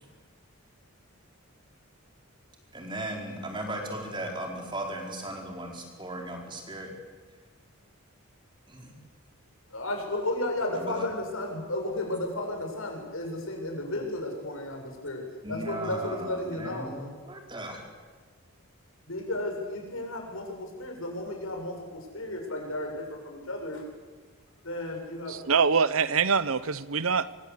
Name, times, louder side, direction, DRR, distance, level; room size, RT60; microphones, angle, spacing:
voice 1, 2.7-6.9 8.7-8.9 10.7-11.1 15.4-17.8, right 1 dB, 20° right, 1 dB, 4.8 m, -37 dB
voice 2, 9.7-15.2 15.5-17.2 19.1-23.8 24.6-25.4, left 1 dB, 75° left, 2 dB, 7.5 m, -33 dB
voice 3, 25.3-27.3, right 5 dB, 75° right, 16 dB, 0.9 m, -24 dB
25.0 x 24.5 x 8.5 m, 1.4 s
head